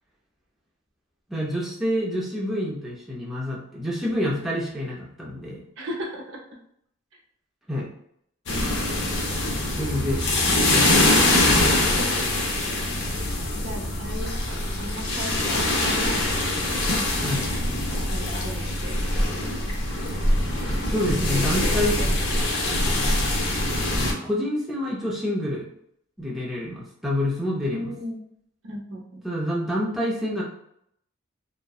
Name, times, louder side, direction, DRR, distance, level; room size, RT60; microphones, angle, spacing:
voice 1, 1.3-5.6 7.7-7.9 9.8-10.2 10.7-11.2 17.2-17.5 20.9-22.0 24.0-25.7 26.2-27.9 29.2-30.4, left 1 dB, ahead, -6 dB, 0.4 m, -27 dB
voice 2, 5.8-6.4 12.0-12.1 13.5-16.3 17.9-19.5 20.6-22.1 27.7-28.2 28.6-29.2, equal, 70° right, -1 dB, 0.6 m, -36 dB
sound 1, 8.5-24.1, left 1 dB, 60° left, 0.5 m, -23 dB
2.6 x 2.1 x 2.2 m, 0.73 s
head